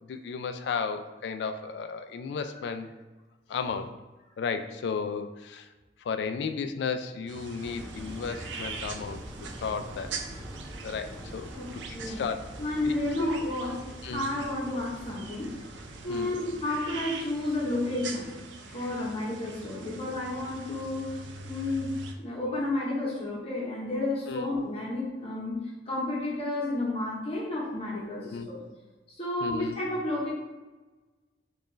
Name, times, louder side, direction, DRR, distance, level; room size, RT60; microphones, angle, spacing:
voice 1, 0.1-2.9 3.5-3.9 4.4-5.7 6.0-9.2 9.6-10.2 10.8-12.4 12.8-13.3 14.0-14.3 16.1-16.3 18.7-18.9 24.3-24.5 28.2-28.5 29.4-29.8, left 5 dB, 65° left, 9 dB, 0.3 m, -34 dB
sound 1, 7.3-22.1, right 4 dB, 80° right, 0.4 m, -43 dB
sound 2, 7.6-18.5, equal, 20° right, 0.6 m, -45 dB
voice 2, 12.6-13.8 14.1-15.6 16.0-18.3 18.7-21.1 21.4-21.9 22.2-28.6 29.2-30.3, left 2 dB, 35° left, -6 dB, 0.9 m, -31 dB
4.4 x 2.4 x 3.1 m, 1.2 s
head